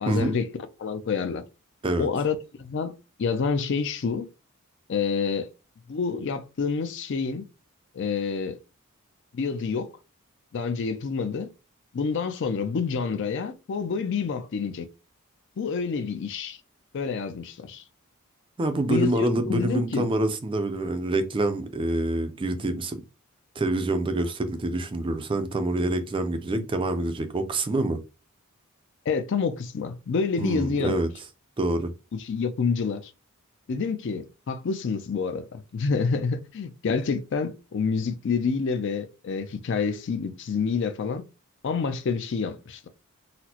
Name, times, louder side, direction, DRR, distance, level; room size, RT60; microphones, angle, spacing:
voice 1, 0.0-0.5 0.8-1.4 2.0-2.9 3.2-4.3 4.9-5.5 5.9-7.4 7.9-8.6 9.3-9.9 10.5-11.5 11.9-14.9 15.6-16.6 16.9-17.8 18.9-20.1 26.6-26.7 29.1-31.0 32.2-33.1 33.7-41.2 41.6-42.9, left 5 dB, 55° left, 0.4 m, -28 dB
voice 2, 18.6-23.0 23.6-28.0 30.4-31.1 31.6-31.9, right 2 dB, 25° right, 0.4 m, -26 dB
4.0 x 2.0 x 2.8 m
head